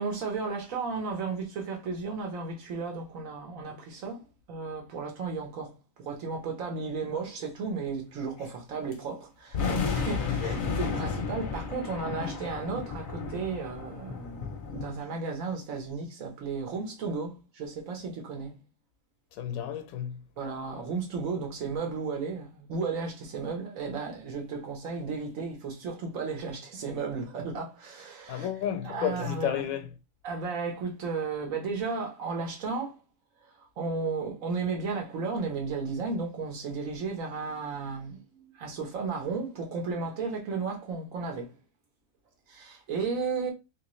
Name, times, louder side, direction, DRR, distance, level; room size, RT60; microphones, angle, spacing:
voice 1, 0.0-18.6 20.4-28.5 28.8-29.6 30.2-33.0 33.8-41.5 42.5-43.5, right 4 dB, 75° right, 1.3 m, -34 dB
sound 1, 8.9-9.0 9.5-15.0, left 5 dB, 50° left, 0.6 m, -33 dB
voice 2, 10.2-10.5 19.3-20.2 28.3-29.9, left 10 dB, 85° left, 1.0 m, -32 dB
3.1 x 2.9 x 3.0 m
omnidirectional pair, 1.4 m